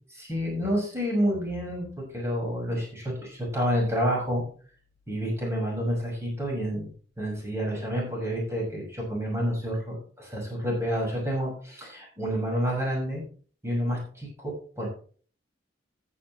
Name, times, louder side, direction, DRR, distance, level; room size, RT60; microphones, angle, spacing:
voice 1, 0.2-4.4 5.1-6.9 7.2-13.2 13.6-14.9, equal, 15° right, -3 dB, 6.4 m, -29 dB
14.0 x 10.0 x 3.3 m, 0.43 s
head